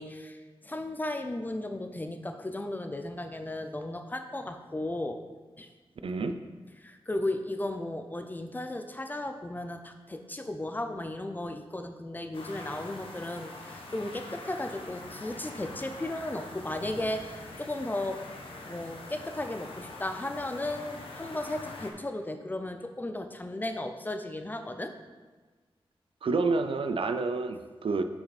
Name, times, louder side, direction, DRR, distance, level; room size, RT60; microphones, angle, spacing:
voice 1, 0.0-5.2 5.6-5.7 6.8-18.2 18.6-24.9, left 1 dB, 20° left, 6 dB, 0.5 m, -35 dB
voice 2, 6.0-6.3 26.2-28.0, right 3 dB, 65° right, 9 dB, 0.5 m, -28 dB
sound 1, 12.3-21.9, left 2 dB, 65° left, 1.0 m, -44 dB
6.3 x 5.8 x 4.2 m, 1.3 s
wide cardioid pair, 130°, 10 cm